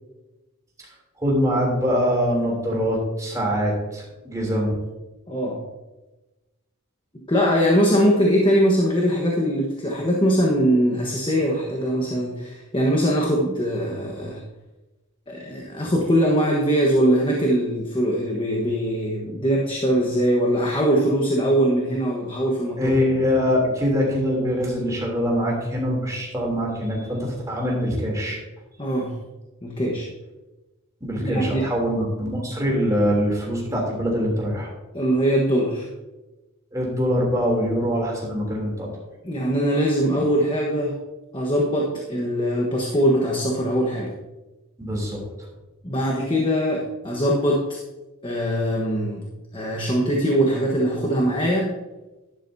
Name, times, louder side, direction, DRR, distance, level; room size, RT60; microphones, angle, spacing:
voice 1, 1.2-4.8 22.8-28.4 31.0-34.7 36.7-38.9 44.8-45.2, equal, 15° right, -2 dB, 3.1 m, -23 dB
voice 2, 5.3-5.6 7.3-14.4 15.3-22.9 28.8-29.2 29.6-30.1 31.2-31.6 34.9-35.9 39.2-41.0 41.3-44.1 45.8-47.7 48.2-49.2 49.5-51.7, equal, 25° left, -1 dB, 1.3 m, -22 dB
11.5 x 11.5 x 2.8 m, 1.1 s
head